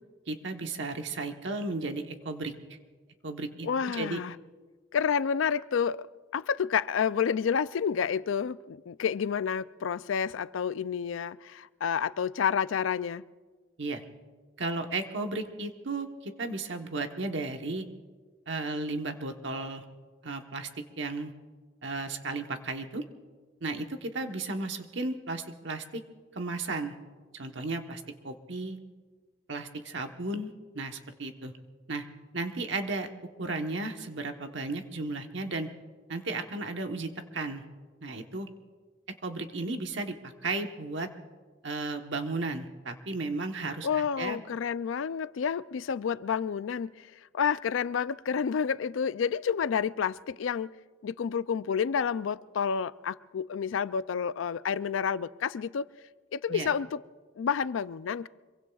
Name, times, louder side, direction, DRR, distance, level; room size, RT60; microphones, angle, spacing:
voice 1, 0.3-2.5 3.2-4.2 13.8-14.0 14.6-17.9 18.5-19.8 20.2-21.3 21.8-23.0 23.6-26.0 26.3-26.9 27.3-28.8 29.5-31.5 31.9-32.0 32.3-33.1 33.4-35.7 36.1-37.6 38.0-38.5 39.2-41.1 41.6-44.4 56.5-56.7, right 3 dB, 70° right, 1.1 m, -34 dB
voice 2, 3.6-4.3 4.9-6.1 6.3-13.2 43.8-47.1 47.3-50.7 51.0-55.9 56.3-57.0 57.4-58.3, left 7 dB, 85° left, 0.4 m, -29 dB
25.5 x 23.0 x 2.4 m
head